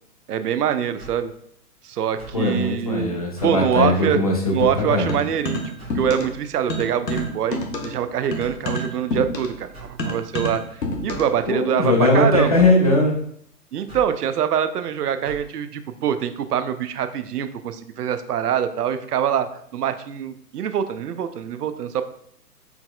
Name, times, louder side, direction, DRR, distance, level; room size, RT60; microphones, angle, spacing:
voice 1, 0.3-1.3 1.8-3.1 3.4-4.2 4.5-5.6 5.9-10.6 11.0-12.5 13.7-22.0, right 9 dB, 70° right, 11 dB, 0.5 m, -24 dB
sound 1, 1.0-1.3 2.2-2.5 3.4-3.7 4.6-4.9 5.8-6.1 7.1-7.4 8.4-8.7 9.7-10.0 11.1-11.3 12.5-12.8 13.9-14.1 15.2-15.5, right 2 dB, 10° right, 1.7 m, -41 dB
voice 2, 2.3-5.2 11.5-13.2, left 2 dB, 25° left, -1 dB, 0.4 m, -19 dB
sound 2, 5.1-6.4 6.7-11.4, left 1 dB, 85° left, 0.9 m, -28 dB
4.4 x 4.0 x 2.2 m, 0.68 s
figure-of-eight pair, 125°, 49 cm